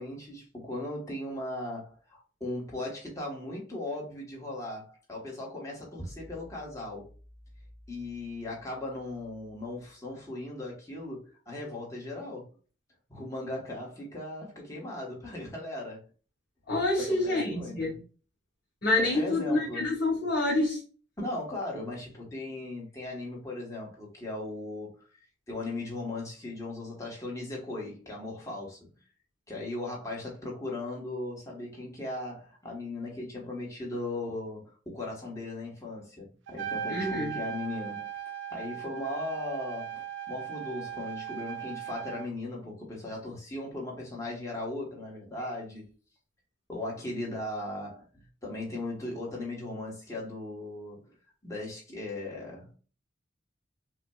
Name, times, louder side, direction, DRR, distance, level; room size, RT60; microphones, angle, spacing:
voice 1, 0.0-7.1 7.9-12.5 13.1-16.0 17.1-18.0 19.0-19.8 21.2-25.0 25.5-28.9 29.5-38.1 38.5-45.9 46.7-51.1 51.4-52.7, left 2 dB, 15° left, 1.2 m, -38 dB
voice 2, 16.7-18.0 18.8-20.8 36.9-37.4, left 2 dB, 50° left, 1.7 m, -27 dB
Trumpet, 36.5-42.3, right 9 dB, 70° right, 0.5 m, -38 dB
5.8 x 2.2 x 2.3 m
head